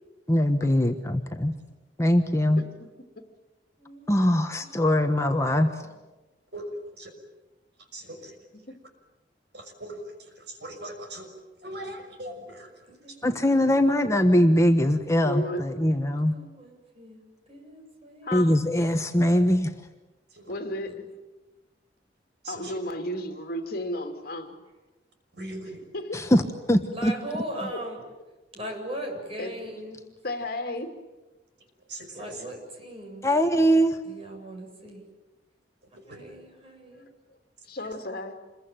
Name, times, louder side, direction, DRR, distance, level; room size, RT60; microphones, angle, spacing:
voice 1, 0.3-1.5 2.0-2.6 4.1-5.7 13.2-16.4 18.3-19.7 26.1-26.4 26.7-27.1 33.2-34.0, equal, 15° left, 5 dB, 1.3 m, -22 dB
voice 2, 3.8-5.6 5.8-5.9 12.9-14.3 15.7-18.4 20.8-20.9 26.9-28.0 28.5-30.0 32.1-33.3 34.0-35.0 36.1-37.0, right 1 dB, 35° right, 1 dB, 7.9 m, -40 dB
voice 3, 7.8-8.4 9.5-11.3 11.6-12.7 13.1-13.2 20.3-20.5 22.4-22.8 25.3-25.8 31.6-32.5 36.1-36.2, right 1 dB, 65° right, 5 dB, 6.0 m, -40 dB
voice 4, 15.2-15.6 18.2-18.6 20.5-21.0 22.5-24.6 25.9-26.2 29.4-29.5 30.2-30.9 36.9-37.0 37.6-38.4, left 1 dB, 55° left, 5 dB, 2.9 m, -33 dB
28.0 x 22.5 x 9.1 m, 1.1 s
head